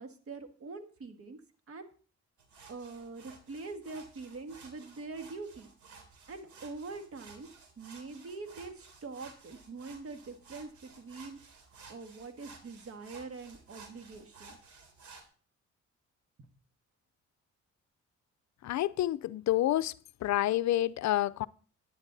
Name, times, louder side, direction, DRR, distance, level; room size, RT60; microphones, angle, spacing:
voice 1, 0.0-1.4 1.7-1.9 2.7-5.7 6.3-7.5 7.8-14.6, right 3 dB, 50° right, 1.8 m, -44 dB
sound 1, 2.4-15.2, right 4 dB, 70° right, 3.1 m, -55 dB
voice 2, 18.6-19.9 20.2-21.5, left 14 dB, 65° left, 0.5 m, -28 dB
11.0 x 10.0 x 4.0 m
cardioid pair, 90°, 30 cm